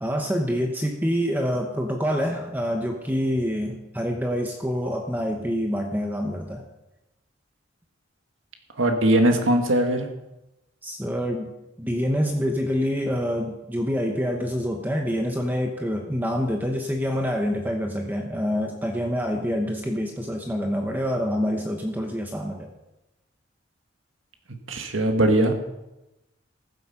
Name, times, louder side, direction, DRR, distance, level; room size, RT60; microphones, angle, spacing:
voice 1, 0.0-6.6 10.8-11.5 11.8-22.7, equal, 10° right, 2 dB, 0.9 m, -26 dB
voice 2, 8.8-10.1 24.7-25.5, right 1 dB, 85° right, 4 dB, 1.7 m, -20 dB
14.5 x 8.1 x 5.7 m, 0.97 s
head